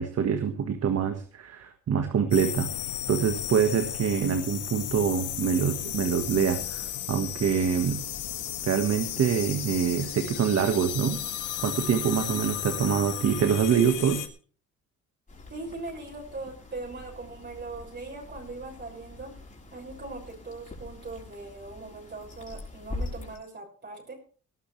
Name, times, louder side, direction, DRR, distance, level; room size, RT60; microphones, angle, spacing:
voice 1, 0.0-2.7 3.1-8.0 8.6-11.2 11.6-14.2, right 7 dB, 55° right, 6 dB, 1.6 m, -25 dB
sound 1, 2.3-14.3, left 11 dB, 80° left, 1.7 m, -34 dB
sound 2, 15.3-23.4, left 2 dB, 25° left, 6.4 m, -43 dB
voice 2, 15.5-19.3 19.7-24.1, right 3 dB, 35° right, -1 dB, 6.4 m, -40 dB
19.5 x 11.5 x 3.3 m, 0.42 s
cardioid pair, 90°, 30 cm